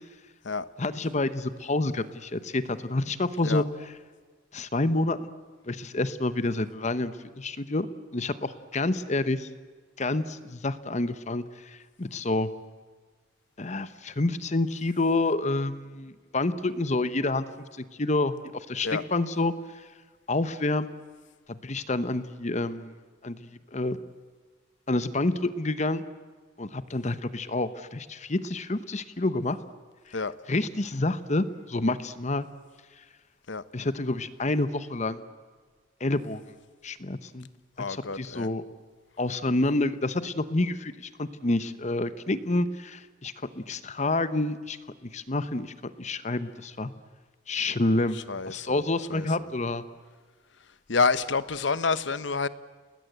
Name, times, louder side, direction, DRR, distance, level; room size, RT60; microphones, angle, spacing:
voice 1, 0.8-3.6 4.5-5.3 5.7-7.9 8.1-9.5 10.0-12.5 13.6-17.4 18.0-19.9 20.3-20.9 21.5-22.9 23.2-24.0 24.9-26.0 26.6-29.6 30.1-30.2 30.5-32.5 33.7-35.2 36.0-36.4 36.8-37.5 37.9-38.6 39.2-44.8 45.0-46.9 47.5-48.2 48.5-49.8, left 2 dB, 35° left, 13 dB, 1.0 m, -28 dB
voice 2, 37.8-38.5 48.1-48.8 49.1-49.5 50.9-52.5, left 4 dB, 70° left, 15 dB, 1.0 m, -28 dB
30.0 x 20.0 x 8.2 m, 1.5 s
head